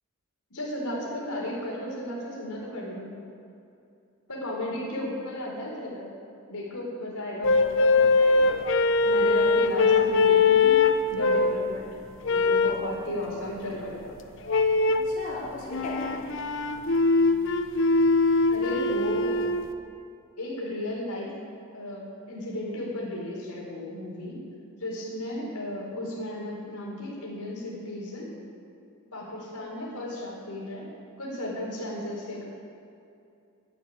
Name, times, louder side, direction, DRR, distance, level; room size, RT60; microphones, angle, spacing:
voice 1, 0.5-3.1 4.3-6.0 6.5-8.6 9.0-10.8 11.1-11.9 12.3-14.2 18.5-19.3 20.4-21.3 21.7-24.4 24.8-28.3 29.1-30.9 31.2-32.4, left 1 dB, 90° left, -4 dB, 4.5 m, -34 dB
sound 1, 7.4-11.7 12.2-12.9 14.5-15.1 15.7-19.7, left 4 dB, 55° left, 0.8 m, -22 dB
voice 2, 14.9-16.2, left 1 dB, 35° left, -7 dB, 3.7 m, -37 dB
12.0 x 9.7 x 9.3 m, 2.6 s
head